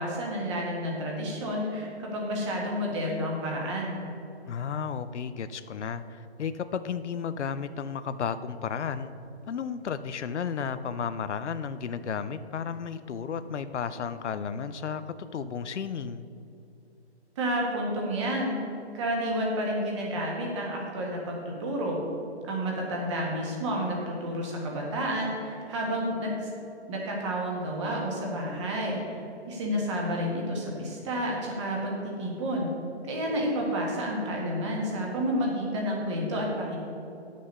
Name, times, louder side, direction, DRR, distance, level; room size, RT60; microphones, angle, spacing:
voice 1, 0.0-4.0 17.3-18.6 18.9-22.0 22.5-26.5 26.9-32.7 33.1-36.8, equal, 25° right, -2 dB, 1.7 m, -30 dB
voice 2, 4.5-9.1 9.5-16.3, left 6 dB, 90° left, 12 dB, 0.6 m, -33 dB
10.0 x 6.3 x 5.4 m, 2.8 s
hypercardioid pair, 165°, 34 cm